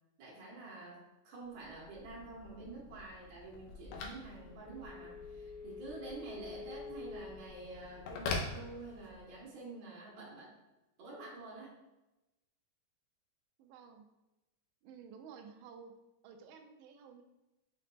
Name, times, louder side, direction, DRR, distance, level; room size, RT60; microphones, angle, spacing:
voice 1, 0.2-10.6 11.0-11.7, right 3 dB, 60° right, -4 dB, 2.1 m, -48 dB
Telephone, 1.5-9.4, left 4 dB, 90° left, 2.2 m, -44 dB
voice 2, 13.6-14.1 14.8-16.0 16.2-17.2, right 6 dB, 80° right, 4 dB, 2.0 m, -53 dB
5.8 x 3.8 x 2.2 m, 1.0 s
omnidirectional pair, 3.7 m